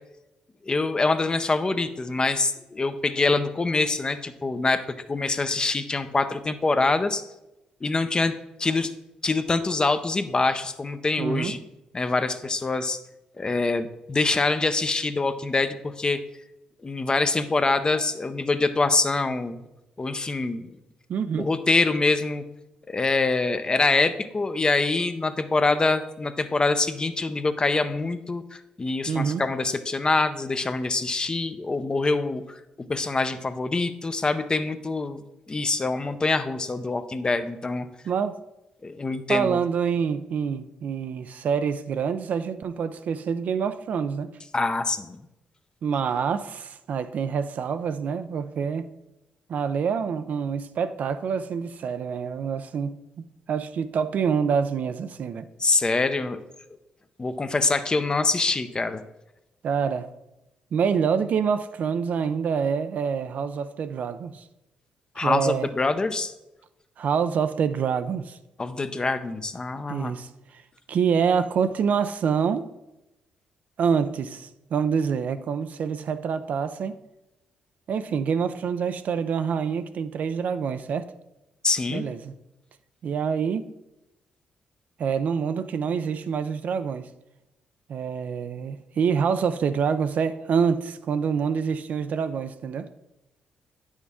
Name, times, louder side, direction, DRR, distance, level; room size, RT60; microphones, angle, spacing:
voice 1, 0.6-7.2 7.8-8.3 8.6-8.9 9.2-11.6 11.9-13.0 13.4-16.2 16.8-19.6 20.0-20.7 21.4-22.4 22.9-32.6 32.9-37.9 38.8-39.6 44.5-45.2 55.6-56.4 57.2-59.0 65.2-66.3 68.6-70.1 81.6-82.0, left 3 dB, 30° left, 0.7 m, -25 dB
voice 2, 11.2-11.6 21.1-21.5 29.1-29.4 38.1-38.4 39.3-44.3 45.8-48.9 49.5-55.5 59.6-60.1 60.7-64.4 65.2-65.7 67.0-68.4 69.9-70.6 70.9-72.7 73.8-76.9 77.9-81.1 81.9-82.4 83.0-83.6 85.0-87.1 87.9-92.9, right 6 dB, 65° right, 0.5 m, -26 dB
8.8 x 6.3 x 3.6 m
cardioid pair, 70°, 3 cm